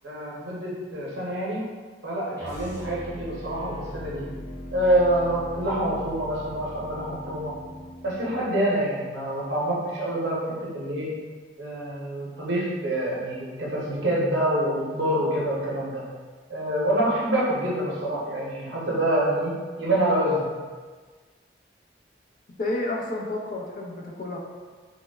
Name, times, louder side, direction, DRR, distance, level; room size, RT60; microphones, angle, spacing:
voice 1, 0.0-1.6 2.0-4.2 4.7-7.6 8.0-11.1 11.6-16.0 16.5-20.5, right 1 dB, 85° right, -5 dB, 0.7 m, -26 dB
sound 1, 2.3-8.5, equal, 15° left, 0.7 m, -40 dB
voice 2, 22.6-24.4, left 2 dB, 45° left, -1 dB, 0.3 m, -30 dB
3.0 x 2.0 x 2.2 m, 1.5 s
head